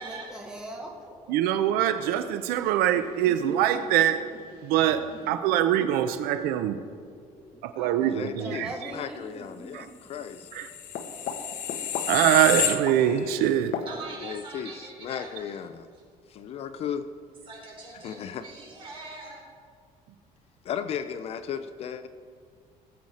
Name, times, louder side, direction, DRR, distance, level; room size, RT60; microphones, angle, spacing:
voice 1, 0.0-1.5 2.9-4.4 4.8-5.4 5.7-6.6 7.0-9.7, right 1 dB, 5° right, 1.1 m, -44 dB
voice 2, 1.3-4.2 4.6-6.8 7.6-8.7 9.7-9.8 10.5-10.7 12.1-13.8, right 11 dB, 85° right, 0.6 m, -23 dB
voice 3, 8.0-8.7 8.9-10.5 14.2-15.9 16.3-17.1 18.0-18.5 20.6-22.1, left 8 dB, 40° left, 0.5 m, -35 dB
sound 1, 10.4-13.3 13.7-13.9, left 9 dB, 55° left, 1.0 m, -30 dB
voice 4, 13.8-15.6 17.5-19.4, right 3 dB, 35° right, 3.4 m, -42 dB
18.5 x 7.9 x 4.2 m
cardioid pair, 165°, 15 cm